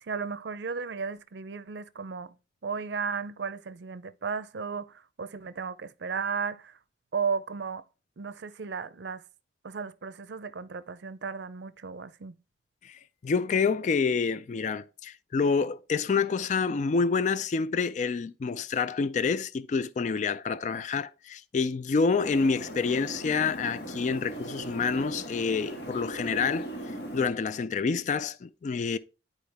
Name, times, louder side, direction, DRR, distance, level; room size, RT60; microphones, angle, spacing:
voice 1, 0.0-2.3 2.6-6.8 7.1-7.9 8.2-9.2 9.6-12.4, right 5 dB, 75° right, 0.5 m, -34 dB
voice 2, 12.8-26.7 27.1-29.0, left 5 dB, 45° left, 0.3 m, -28 dB
sound 1, 22.2-27.3, right 1 dB, 70° left, 1.5 m, -39 dB
10.5 x 4.4 x 3.4 m
head